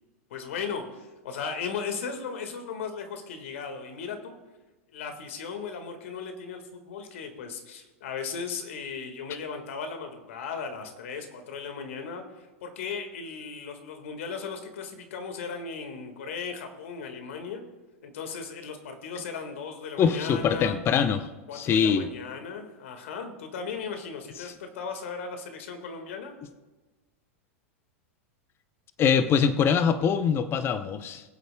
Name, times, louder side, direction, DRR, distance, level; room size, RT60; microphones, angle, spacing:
voice 1, 0.3-4.4 4.9-17.6 18.0-20.7 21.5-26.3, left 5 dB, 70° left, 6 dB, 1.8 m, -37 dB
voice 2, 20.0-21.3 21.5-22.1 29.0-31.2, left 7 dB, 35° left, 11 dB, 0.7 m, -23 dB
21.5 x 8.0 x 2.3 m, 1.2 s
hypercardioid pair, 100°, 7 cm